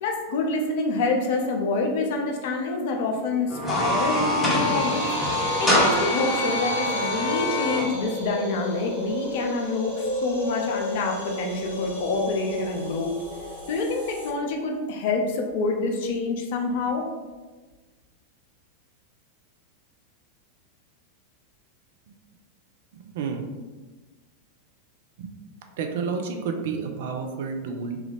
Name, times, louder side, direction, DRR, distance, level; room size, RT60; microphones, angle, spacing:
voice 1, 0.0-5.1 5.6-13.1 13.7-17.1, left 3 dB, 50° left, 2 dB, 0.5 m, -27 dB
sound 1, 3.5-7.9, left 1 dB, 15° left, 0.8 m, -24 dB
sound 2, 4.5-14.3, left 1 dB, 80° right, 1.2 m, -33 dB
voice 2, 22.9-23.5 25.2-25.3 25.8-28.0, right 5 dB, 55° right, 4 dB, 0.4 m, -30 dB
3.0 x 2.4 x 3.2 m, 1.3 s
figure-of-eight pair, 90°, 0 cm